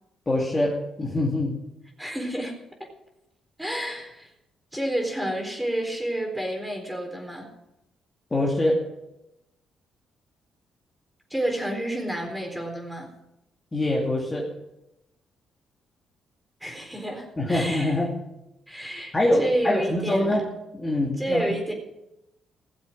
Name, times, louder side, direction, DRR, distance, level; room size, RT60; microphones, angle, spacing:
voice 1, 0.3-1.6 8.3-8.9 13.7-14.5 17.4-18.1 19.1-20.5 20.7-21.5, left 1 dB, 20° left, -2 dB, 2.6 m, -24 dB
voice 2, 2.0-2.5 3.6-4.3 4.7-7.5 11.3-13.1 16.6-18.0 18.7-20.4 21.2-21.7, right 1 dB, 5° right, 2 dB, 4.1 m, -29 dB
17.5 x 7.6 x 7.6 m, 0.89 s
cardioid pair, 90°, 0 cm